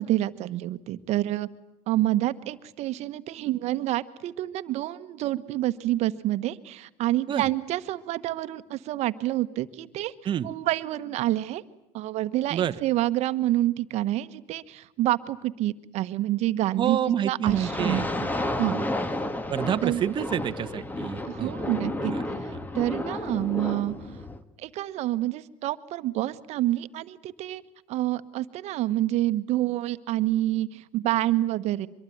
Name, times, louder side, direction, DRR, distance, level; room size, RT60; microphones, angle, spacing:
voice 1, 0.0-1.5 1.9-10.1 10.4-11.6 11.9-18.3 18.6-18.8 19.8-20.0 21.2-24.1 24.6-27.6 27.9-31.9, right 15 dB, 55° right, 13 dB, 1.2 m, -28 dB
voice 2, 16.8-18.0 18.7-19.1 19.5-21.5 22.0-22.2, right 9 dB, 40° right, 10 dB, 1.1 m, -28 dB
sound 1, 17.5-24.4, left 1 dB, 15° left, 1.7 m, -31 dB
24.0 x 23.0 x 9.4 m, 0.84 s
supercardioid pair, 110°, 13 cm